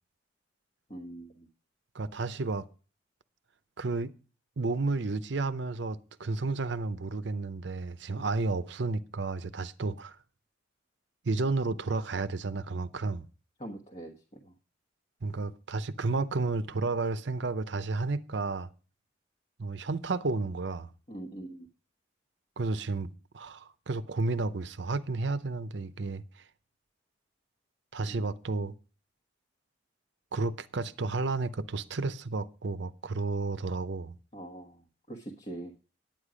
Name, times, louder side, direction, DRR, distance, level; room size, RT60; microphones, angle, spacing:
voice 1, 0.9-1.5 13.6-14.1 14.4-14.5 21.1-21.7 28.1-28.2 34.3-35.7, right 1 dB, 30° left, 1.2 m, -43 dB
voice 2, 1.9-2.7 3.8-4.1 4.6-10.1 11.2-13.2 15.2-18.7 19.6-20.9 22.6-26.2 27.9-28.7 30.3-34.2, right 3 dB, 70° right, 0.6 m, -32 dB
9.9 x 9.0 x 5.0 m
head